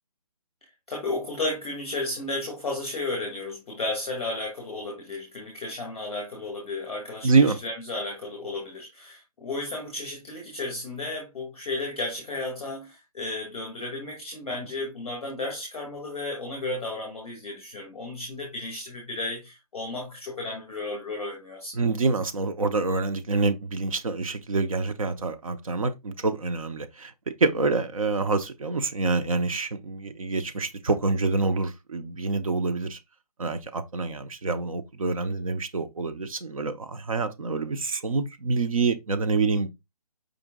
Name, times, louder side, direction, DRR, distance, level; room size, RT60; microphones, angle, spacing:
voice 1, 0.6-21.8, left 2 dB, ahead, 0.5 m, -33 dB
voice 2, 7.2-7.6 21.7-27.1 27.4-33.0 33.4-39.7, right 3 dB, 60° right, 0.7 m, -26 dB
5.1 x 2.6 x 3.6 m
hypercardioid pair, 180°, 20 cm